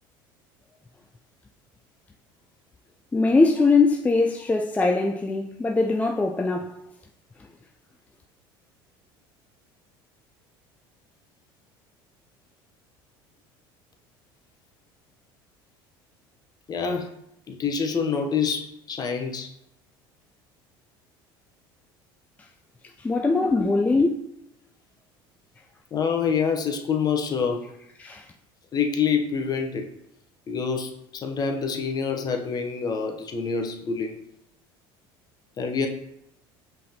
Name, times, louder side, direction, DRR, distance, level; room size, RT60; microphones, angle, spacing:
voice 1, 3.1-6.7 23.0-24.1 28.0-28.3, left 3 dB, 15° left, 0.4 m, -21 dB
voice 2, 16.7-17.1 17.5-19.5 23.4-23.7 25.9-27.6 28.7-29.9 30.5-34.2 35.6-35.9, left 6 dB, 35° left, 0.8 m, -26 dB
5.4 x 3.4 x 2.8 m
supercardioid pair, 90°, 11 cm